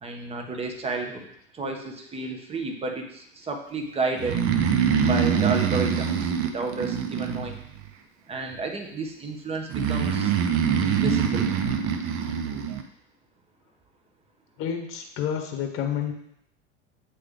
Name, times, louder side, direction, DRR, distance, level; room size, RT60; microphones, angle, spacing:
voice 1, 0.0-1.3 1.5-4.4 5.0-7.6 8.3-10.3 10.8-11.5, right 3 dB, 15° right, 3 dB, 0.9 m, -31 dB
Breathing, 4.2-7.9 9.7-12.8, right 7 dB, 40° right, 0.7 m, -24 dB
voice 2, 14.6-16.1, left 8 dB, 35° left, 4 dB, 1.0 m, -29 dB
8.3 x 3.2 x 3.8 m, 0.73 s
figure-of-eight pair, 85°, 36 cm